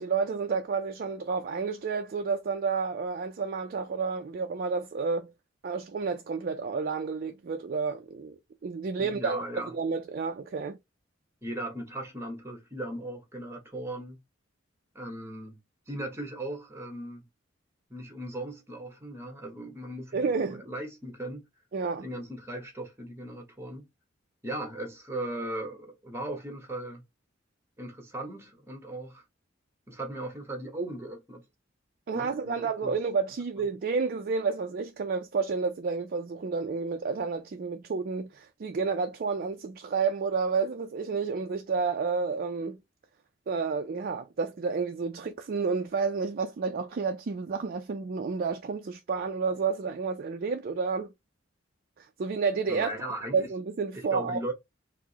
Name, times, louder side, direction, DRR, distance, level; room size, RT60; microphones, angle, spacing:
voice 1, 0.0-5.3 5.6-9.4 9.7-10.8 20.1-20.6 21.7-22.1 32.1-42.8 43.5-51.1 52.0-52.9 53.3-54.4, right 5 dB, 50° right, 0.4 m, -30 dB
voice 2, 9.0-9.7 11.4-14.2 14.9-15.6 15.9-17.2 17.9-21.4 22.0-23.9 24.4-27.0 27.8-29.2 29.9-31.4 32.1-32.9 33.6-33.7 52.7-53.5 53.9-54.5, right 1 dB, 15° right, 1.0 m, -38 dB
4.5 x 2.1 x 2.8 m
head